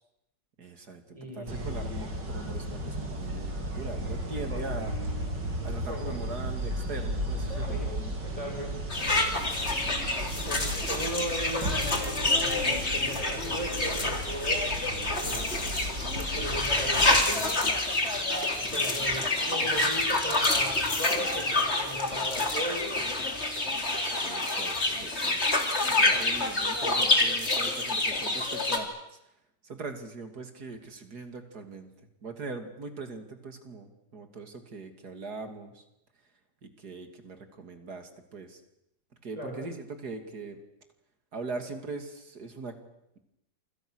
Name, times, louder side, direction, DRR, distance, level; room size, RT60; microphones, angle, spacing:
voice 1, 0.6-4.9 5.6-8.2 9.7-9.9 10.2-10.6 24.2-25.7 25.9-29.2 29.6-31.9 32.2-35.8 36.6-38.6 39.2-40.6 41.3-42.8, right 3 dB, 60° right, 6 dB, 3.1 m, -41 dB
voice 2, 1.1-2.1 4.0-4.8 5.9-6.2 7.5-8.8 10.3-14.6 15.2-15.5 16.2-17.5 18.6-23.5 39.4-39.7, equal, 20° right, 2 dB, 5.5 m, -38 dB
sound 1, 1.5-17.2, equal, 75° right, 4.4 m, -35 dB
sound 2, 8.9-28.8, left 2 dB, 35° left, 3.4 m, -27 dB
28.0 x 26.0 x 6.4 m, 0.84 s
omnidirectional pair, 1.9 m